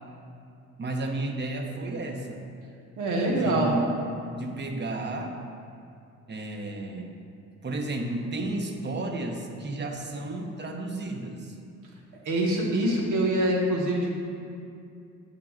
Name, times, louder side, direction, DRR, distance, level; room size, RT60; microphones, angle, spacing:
voice 1, 0.8-2.5 3.4-3.9 4.3-5.4 6.3-7.1 7.6-11.6, right 2 dB, 35° right, 3 dB, 0.8 m, -32 dB
voice 2, 3.0-3.7 12.2-14.2, right 1 dB, 85° right, -1 dB, 1.1 m, -25 dB
8.4 x 7.8 x 2.4 m, 2.5 s
cardioid pair, 90°, 30 cm